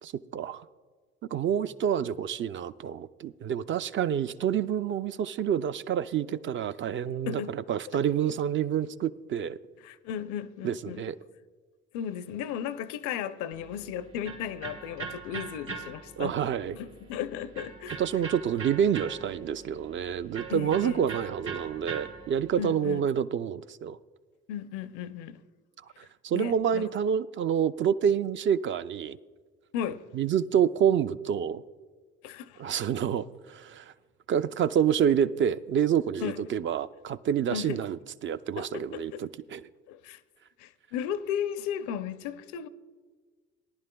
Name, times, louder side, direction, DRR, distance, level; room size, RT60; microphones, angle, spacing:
voice 1, 0.0-0.6 1.2-9.6 10.6-11.2 16.2-16.8 18.0-24.0 26.0-29.2 30.1-31.6 32.6-33.9 34.3-39.6, right 8 dB, 40° right, 0.4 m, -28 dB
voice 2, 7.3-7.6 7.9-8.0 9.8-11.1 11.9-16.3 16.7-18.0 20.5-21.1 22.6-23.0 24.5-25.4 26.3-26.9 29.7-30.0 32.2-32.6 36.2-36.5 37.5-37.8 38.6-39.2 39.9-40.2 40.6-42.7, left 9 dB, 75° left, 0.6 m, -35 dB
Electric guitar, 13.5-22.6, right 5 dB, 80° right, 2.1 m, -42 dB
18.5 x 10.5 x 2.2 m
hypercardioid pair, 65°, 31 cm